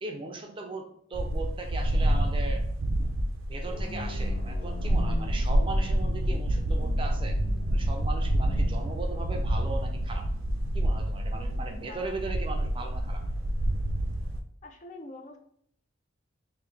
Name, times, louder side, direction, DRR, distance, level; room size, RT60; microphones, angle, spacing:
voice 1, 0.0-2.6 3.5-7.4 7.7-10.3 10.7-13.2, right 3 dB, 25° right, 3 dB, 0.5 m, -38 dB
sound 1, 1.1-14.4, right 1 dB, 80° right, 0.5 m, -28 dB
sound 2, 3.7-10.7, left 1 dB, 75° left, 0.8 m, -40 dB
voice 2, 14.6-15.4, left 2 dB, 35° left, 4 dB, 0.4 m, -44 dB
3.7 x 2.6 x 3.4 m, 0.66 s
head